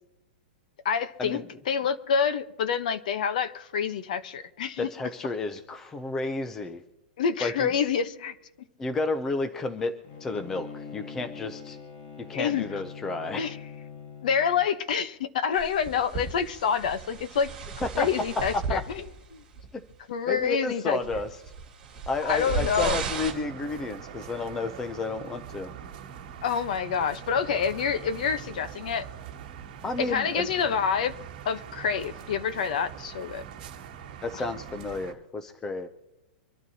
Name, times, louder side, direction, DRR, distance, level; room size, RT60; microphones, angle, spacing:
voice 1, 0.8-1.4 1.7-4.9 7.2-8.3 12.3-12.6 13.4-13.6 14.2-17.5 18.0-19.0 19.3-19.4 20.1-21.0 22.2-23.0 26.4-29.1 30.0-31.1 31.4-33.4, left 7 dB, 45° left, 0.9 m, -27 dB
voice 2, 4.8-6.8 7.4-7.7 8.8-9.9 10.2-11.8 12.3-13.5 17.8-18.1 18.5-18.8 19.7-19.8 20.3-21.4 22.1-25.7 29.8-30.5 34.2-35.9, left 3 dB, 5° left, 0.4 m, -31 dB
Bowed string instrument, 10.0-14.7, left 6 dB, 25° left, 1.1 m, -43 dB
sound 1, 15.5-19.2 19.5-19.9 20.4-20.5 21.0-23.3, right 5 dB, 10° right, 2.5 m, -35 dB
sound 2, 23.3-35.1, right 9 dB, 40° right, 1.7 m, -43 dB
25.0 x 12.0 x 2.8 m
hypercardioid pair, 180°, 6 cm